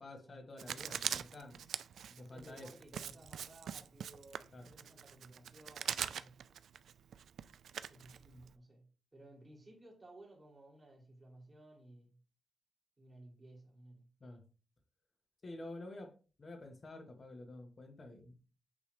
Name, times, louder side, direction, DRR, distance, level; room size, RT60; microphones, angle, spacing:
voice 1, 0.0-1.6 2.1-2.7 4.5-4.7 14.2-14.4 15.4-16.1 16.4-18.3, left 2 dB, 35° left, 1.5 m, -49 dB
Writing, 0.6-8.5, right 8 dB, 85° right, 0.3 m, -42 dB
voice 2, 2.2-6.4 7.9-8.8 9.1-12.1 13.0-14.4, right 1 dB, 20° right, 2.7 m, -58 dB
8.6 x 3.5 x 3.3 m
wide cardioid pair, 135°, 0 cm